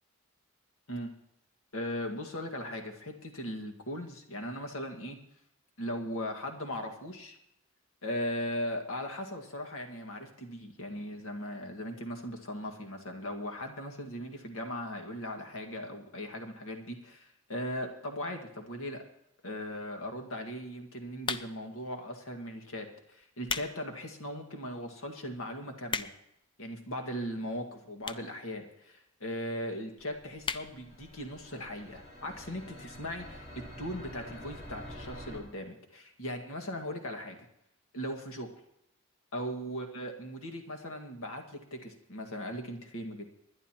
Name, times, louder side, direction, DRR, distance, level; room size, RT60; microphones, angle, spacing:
voice 1, 1.7-5.2 5.8-7.4 8.0-19.0 19.4-26.1 26.6-33.5 33.8-37.4 37.9-38.5 39.3-43.3, equal, 85° left, 3 dB, 1.9 m, -38 dB
sound 1, 21.2-21.8 22.5-22.7 23.2-23.7 24.2-24.3 24.9-25.0 25.2-25.3 25.5-26.4 27.2-27.3 28.0-28.4 28.7-28.8 28.9-29.0 29.3-29.4 29.7-29.9 30.4-30.7 31.1-31.2 31.4-31.5, left 5 dB, 25° left, 0.5 m, -35 dB
sound 2, 30.0-35.4, equal, 50° left, 3.0 m, -47 dB
26.5 x 11.0 x 3.0 m, 0.79 s
head